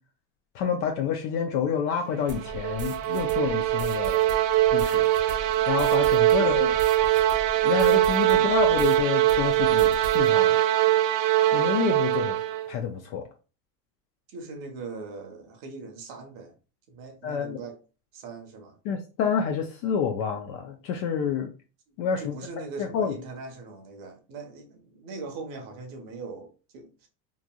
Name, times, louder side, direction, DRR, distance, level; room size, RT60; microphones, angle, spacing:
voice 1, 0.5-4.2 4.7-5.1 5.7-6.7 7.6-10.6 11.5-12.4 12.7-13.2 17.2-17.6 18.9-21.5 22.0-22.3 22.8-23.2, left 7 dB, 40° left, 0.4 m, -28 dB
sound 1, 2.2-12.7, right 13 dB, 75° right, 0.6 m, -22 dB
sound 2, 2.3-9.0 9.3-10.3, right 2 dB, 25° right, 0.5 m, -40 dB
voice 2, 8.3-8.9 14.3-16.5 16.9-17.8 18.1-18.8 22.2-27.1, right 4 dB, 45° right, 0.9 m, -40 dB
3.1 x 2.4 x 2.2 m
supercardioid pair, 120°, 49 cm